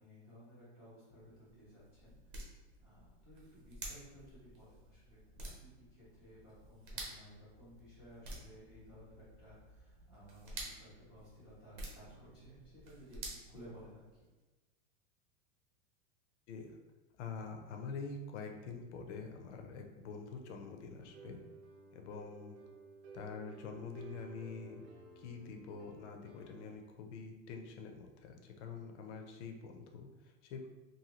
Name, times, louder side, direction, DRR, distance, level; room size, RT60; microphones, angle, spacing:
voice 1, 0.0-2.3 2.8-5.2 5.6-13.2 13.5-14.2, equal, 5° right, -15 dB, 0.3 m, -57 dB
sound 1, 1.1-14.3, right 2 dB, 45° right, 0.7 m, -51 dB
voice 2, 16.5-16.8 17.2-21.4 21.9-22.6 23.1-24.8 25.2-30.7, left 5 dB, 85° left, 4 dB, 0.6 m, -46 dB
sound 2, 21.0-26.8, right 4 dB, 85° right, 0.7 m, -55 dB
2.7 x 2.6 x 2.9 m, 1.2 s
supercardioid pair, 180°, 34 cm